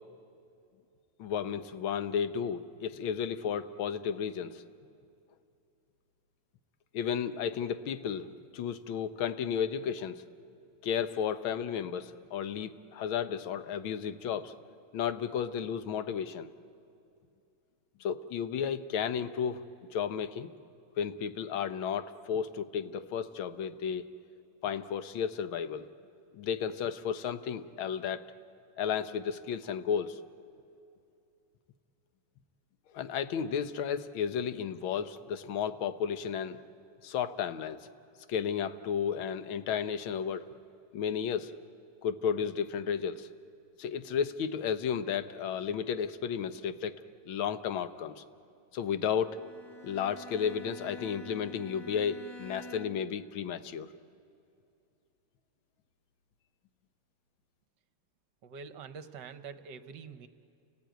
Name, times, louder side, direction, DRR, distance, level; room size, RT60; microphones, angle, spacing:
voice 1, 1.2-4.6 6.9-8.3 8.5-10.2 10.8-14.5 14.9-16.5 18.0-19.6 19.9-20.5 21.0-24.0 24.6-25.9 26.3-28.3 28.8-30.2 32.9-36.6 37.0-37.9 38.3-40.5 40.9-41.5 42.0-43.3 43.8-46.9 47.3-48.2 48.7-49.4 49.8-53.9, left 7 dB, 80° left, 12 dB, 1.7 m, -33 dB
Bowed string instrument, 49.1-53.2, equal, 40° left, 0.3 m, -48 dB
voice 2, 58.4-60.3, right 5 dB, 65° right, 11 dB, 1.4 m, -45 dB
29.5 x 18.5 x 9.1 m, 2.6 s
omnidirectional pair, 2.2 m